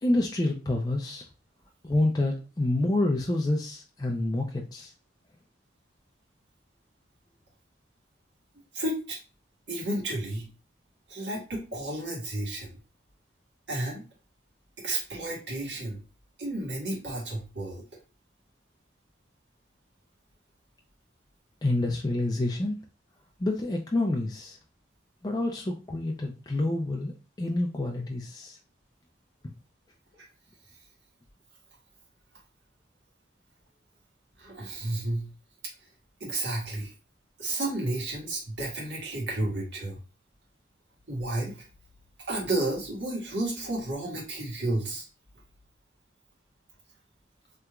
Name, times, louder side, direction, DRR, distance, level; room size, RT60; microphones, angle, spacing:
voice 1, 0.0-1.3 1.8-4.9 21.6-22.8 23.4-24.6 25.2-28.6, left 2 dB, 20° left, 0 dB, 0.3 m, -28 dB
voice 2, 8.7-9.2 9.7-10.5 11.1-12.7 13.7-14.0 14.8-16.0 16.4-17.8 34.4-35.3 36.2-36.9 37.4-40.0 41.1-41.6 42.3-45.1, right 2 dB, 65° right, -3 dB, 1.5 m, -32 dB
3.5 x 2.8 x 2.3 m, 0.33 s
head